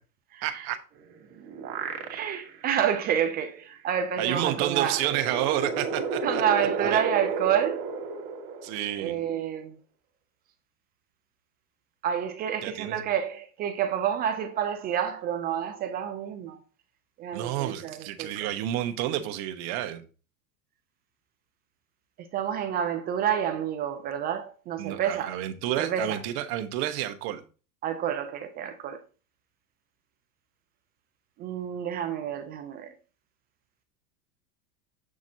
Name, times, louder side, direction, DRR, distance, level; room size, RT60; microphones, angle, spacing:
voice 1, 0.4-0.8 4.2-6.4 6.8-7.0 8.6-9.2 12.6-13.0 17.3-20.0 24.8-27.4, right 12 dB, 50° right, 1.1 m, -30 dB
sound 1, 1.0-2.6 3.1-3.2 4.4-9.2, right 4 dB, 80° right, 1.7 m, -33 dB
voice 2, 2.1-5.0 6.2-7.9 9.0-9.7 12.0-16.6 17.2-18.3 22.3-25.3 25.8-26.2 27.8-29.0 31.4-32.9, right 9 dB, 25° right, 0.3 m, -29 dB
7.4 x 6.2 x 2.8 m
supercardioid pair, 120°, 48 cm